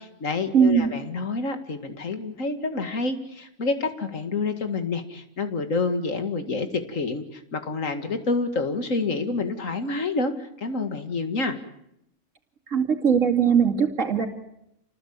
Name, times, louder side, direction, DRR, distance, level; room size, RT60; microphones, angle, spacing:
voice 1, 0.0-11.6, left 3 dB, 75° left, 8 dB, 2.4 m, -28 dB
voice 2, 0.5-0.9 12.7-14.3, right 7 dB, 70° right, 3 dB, 2.9 m, -20 dB
28.0 x 20.0 x 8.8 m, 0.81 s
omnidirectional pair, 1.4 m